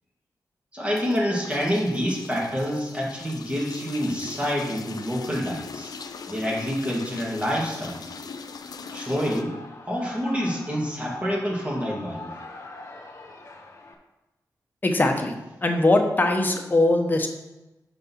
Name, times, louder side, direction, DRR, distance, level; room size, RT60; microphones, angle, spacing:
voice 1, 0.7-5.9 6.3-8.0 8.9-9.6 9.9-12.3, equal, 20° right, -3 dB, 2.0 m, -27 dB
sound 1, 1.0-9.4, left 5 dB, 70° left, 0.6 m, -40 dB
Shout / Cheering, 8.5-13.9, left 2 dB, 45° left, 1.2 m, -43 dB
voice 2, 14.8-17.3, left 2 dB, 30° left, 3 dB, 1.0 m, -21 dB
6.0 x 5.3 x 5.6 m, 1.0 s
wide cardioid pair, 120°, 7 cm